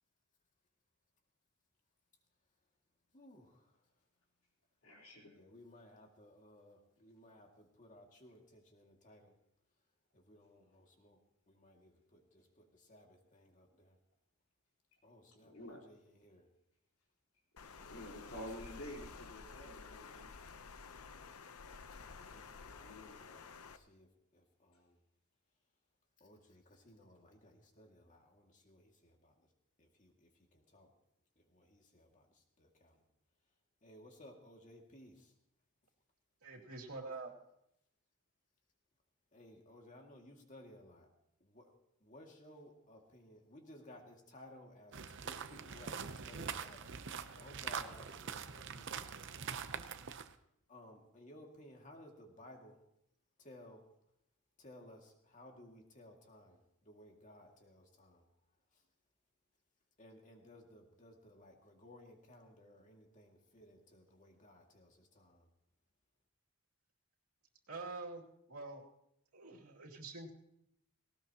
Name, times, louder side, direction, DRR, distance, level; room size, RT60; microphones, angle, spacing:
voice 1, 3.1-3.7 5.3-9.3 10.1-11.2 11.5-14.0 15.0-16.5 18.3-18.8 22.0-25.0 26.2-29.3 29.8-30.9 31.4-33.0 33.8-35.3 39.3-41.1 41.4-41.7 42.0-46.9 47.3-49.5 50.7-52.8 53.4-53.9 54.6-58.2 60.0-65.5, left 1 dB, 35° left, 2 dB, 2.2 m, -59 dB
voice 2, 4.8-5.4 15.4-15.8 17.6-20.3 22.7-23.3, equal, 70° left, -2 dB, 3.9 m, -50 dB
Water, 17.6-23.8, left 5 dB, 90° left, 0.8 m, -52 dB
voice 3, 36.4-37.3 67.7-68.2 68.5-68.8 69.3-70.3, right 3 dB, 85° right, -1 dB, 2.6 m, -46 dB
sound 1, 44.9-50.3, right 6 dB, 55° right, 0.7 m, -44 dB
18.5 x 18.5 x 2.9 m, 0.78 s
head